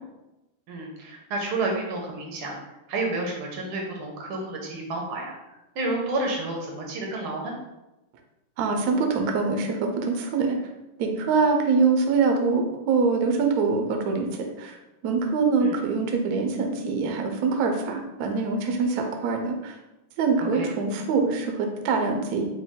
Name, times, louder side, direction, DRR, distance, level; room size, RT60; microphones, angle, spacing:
voice 1, 0.7-7.5 15.6-15.8 20.5-20.7, right 2 dB, 85° right, 0 dB, 1.8 m, -30 dB
voice 2, 8.6-10.6 11.0-14.8 15.0-19.8 20.2-22.4, right 4 dB, 70° right, 3 dB, 0.9 m, -24 dB
5.1 x 2.3 x 3.6 m, 0.98 s
omnidirectional pair, 2.2 m